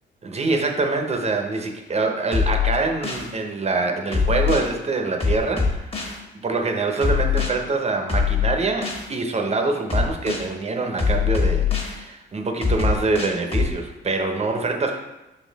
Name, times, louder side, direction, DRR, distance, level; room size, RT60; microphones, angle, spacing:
voice 1, 0.2-15.0, right 3 dB, 35° right, 3 dB, 0.9 m, -25 dB
sound 1, 2.3-3.3 4.1-4.7 5.2-6.2 7.0-7.5 8.1-9.1 9.9-10.5 11.0-12.0 12.6-13.7, left 6 dB, 30° left, 1.5 m, -22 dB
5.6 x 4.1 x 4.1 m, 1.0 s
cardioid pair, 90°, 20 cm